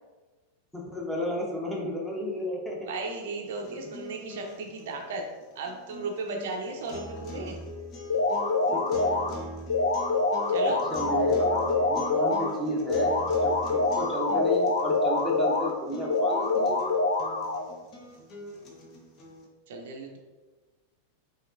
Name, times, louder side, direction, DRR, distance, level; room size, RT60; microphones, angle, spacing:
voice 1, 0.7-2.9 8.7-8.8 9.3-9.4 10.6-16.8, left 1 dB, 5° left, -2 dB, 0.9 m, -32 dB
voice 2, 2.9-5.2 5.6-7.6 10.5-10.8 19.7-20.2, right 3 dB, 55° right, 2 dB, 0.5 m, -35 dB
sound 1, 3.4-19.5, left 1 dB, 35° left, 0.8 m, -42 dB
sound 2, 8.1-9.3 9.7-12.5 12.9-15.7 16.1-17.7, left 3 dB, 70° left, 0.5 m, -25 dB
5.6 x 2.8 x 2.6 m, 1.3 s
figure-of-eight pair, 90°, 0 cm